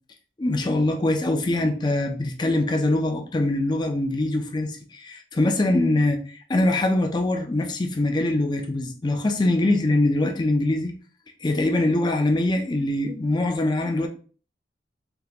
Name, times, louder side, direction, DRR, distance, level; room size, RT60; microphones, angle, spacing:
voice 1, 0.4-6.2 6.5-10.9 11.4-14.1, left 2 dB, 25° left, 0.4 m, -23 dB
3.4 x 2.9 x 2.4 m
head